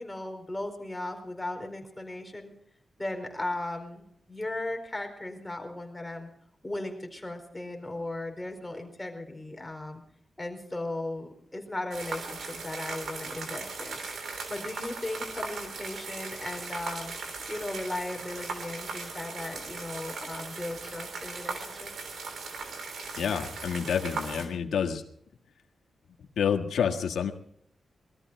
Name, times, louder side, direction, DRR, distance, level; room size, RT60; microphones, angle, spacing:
voice 1, 0.0-2.5 3.0-6.3 6.6-10.0 10.4-17.1 17.5-21.9, left 2 dB, 15° left, 4 dB, 4.3 m, -37 dB
sound 1, 11.9-24.5, right 4 dB, 75° right, 3.4 m, -38 dB
voice 2, 23.2-25.0 26.4-27.3, left 7 dB, 85° left, 3 dB, 1.6 m, -28 dB
21.5 x 13.5 x 4.6 m, 0.69 s
cardioid pair, 75°, 0 cm